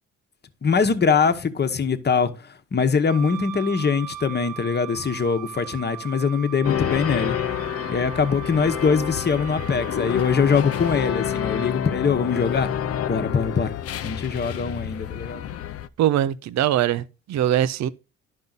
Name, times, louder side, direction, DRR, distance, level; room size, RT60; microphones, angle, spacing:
voice 1, 0.6-7.4 7.9-12.7 13.1-13.8 14.0-15.5, left 5 dB, 35° left, 1.1 m, -22 dB
Wind instrument woodwind instrument, 3.1-11.7, right 13 dB, 90° right, 1.7 m, -39 dB
sound 1, 6.6-15.9, left 9 dB, 50° left, 0.5 m, -29 dB
voice 2, 16.0-17.9, right 11 dB, 65° right, 0.6 m, -22 dB
11.0 x 5.5 x 3.9 m
cardioid pair, 90°, 30 cm